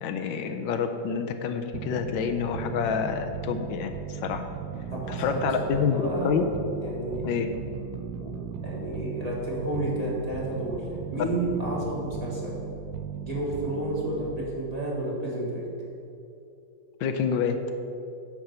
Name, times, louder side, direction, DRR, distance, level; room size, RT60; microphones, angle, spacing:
voice 1, 0.0-4.4 5.1-6.4 7.2-7.5 17.0-17.6, left 6 dB, 85° left, 6 dB, 1.4 m, -28 dB
sound 1, 1.7-14.6, right 7 dB, 90° right, 1.3 m, -37 dB
voice 2, 4.9-6.5 6.8-7.3 8.2-12.6 13.2-15.7, right 1 dB, 20° right, -6 dB, 1.7 m, -31 dB
9.7 x 4.9 x 6.7 m, 2.6 s
omnidirectional pair, 2.0 m